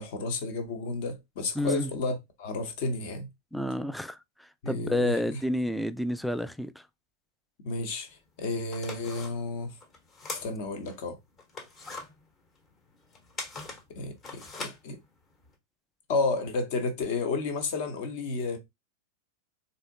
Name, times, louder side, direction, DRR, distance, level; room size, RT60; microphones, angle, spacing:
voice 1, 0.0-3.3 4.6-5.4 7.6-8.1 8.4-9.7 10.3-11.2 13.9-15.0 16.1-18.6, left 3 dB, 50° left, 1.0 m, -31 dB
voice 2, 1.6-1.9 3.5-6.8, left 1 dB, ahead, 0.3 m, -30 dB
sound 1, 8.1-8.2 8.6-11.0 11.4-15.5, left 3 dB, 25° left, 1.1 m, -42 dB
4.1 x 2.7 x 2.7 m
figure-of-eight pair, 90°, 0 cm